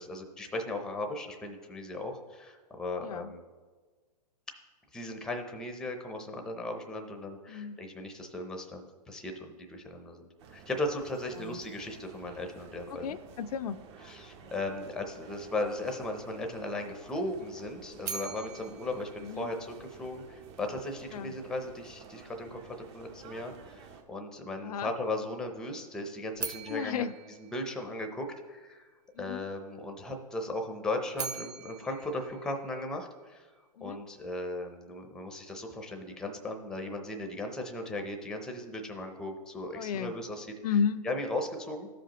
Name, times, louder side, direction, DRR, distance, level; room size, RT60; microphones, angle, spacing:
voice 1, 0.0-3.4 4.9-13.2 14.0-27.0 27.5-28.9 29.2-33.5 33.8-40.5 41.0-41.9, left 2 dB, 5° left, 4 dB, 0.6 m, -37 dB
voice 2, 3.0-3.3 7.5-7.8 11.4-11.6 12.9-13.8 19.2-19.5 21.1-21.3 24.6-24.9 26.7-27.1 29.2-29.4 33.8-34.0 39.7-40.1 40.6-41.1, left 7 dB, 65° left, 11 dB, 0.4 m, -33 dB
sound 1, 10.4-24.0, right 5 dB, 40° right, 0.9 m, -52 dB
sound 2, 18.0-20.2 26.3-28.5 30.9-33.3, right 6 dB, 70° right, 0.9 m, -42 dB
14.0 x 5.0 x 3.0 m, 1.4 s
hypercardioid pair, 145°, 21 cm